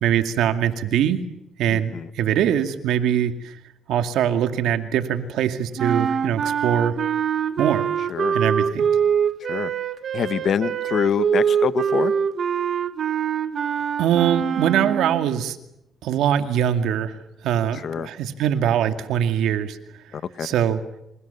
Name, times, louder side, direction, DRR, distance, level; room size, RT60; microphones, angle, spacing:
voice 1, 0.0-1.2 1.6-3.6 3.9-7.0 7.6-7.9 8.3-8.9 14.0-15.6 16.0-17.2 17.4-19.8 20.4-20.8, right 9 dB, 85° right, 8 dB, 2.3 m, -22 dB
voice 2, 1.7-2.1 8.1-8.4 9.5-9.7 10.1-12.1 17.7-18.1 20.1-20.5, left 7 dB, 60° left, 14 dB, 1.3 m, -25 dB
sound 1, 5.8-15.3, right 7 dB, 55° right, 1.6 m, -24 dB
28.5 x 27.0 x 7.1 m, 0.83 s
cardioid pair, 90°, 0 cm